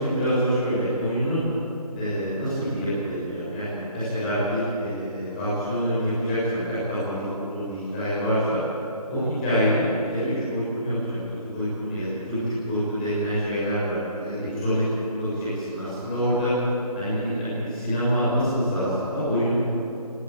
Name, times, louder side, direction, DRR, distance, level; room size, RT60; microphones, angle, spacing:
voice 1, 0.0-1.4 1.9-8.6 9.1-11.2 11.5-14.8 15.1-16.5 16.9-19.6, equal, 15° left, -11 dB, 6.5 m, -26 dB
22.5 x 18.5 x 8.9 m, 2.8 s
figure-of-eight pair, 170°, 20 cm